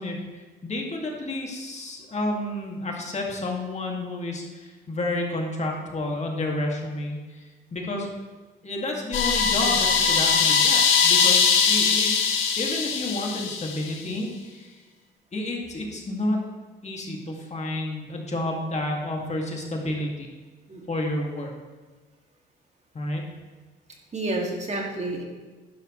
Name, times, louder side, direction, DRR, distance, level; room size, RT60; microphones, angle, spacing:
voice 1, 0.0-8.1 8.6-14.8 15.3-16.4 16.8-20.3 20.9-21.5 22.9-23.2, left 1 dB, 35° left, 0 dB, 2.2 m, -30 dB
sound 1, 9.1-14.0, left 6 dB, 80° left, 1.4 m, -21 dB
voice 2, 24.1-25.2, right 2 dB, 35° right, 0 dB, 2.3 m, -30 dB
11.5 x 11.0 x 3.2 m, 1.4 s
cardioid pair, 90°, 20 cm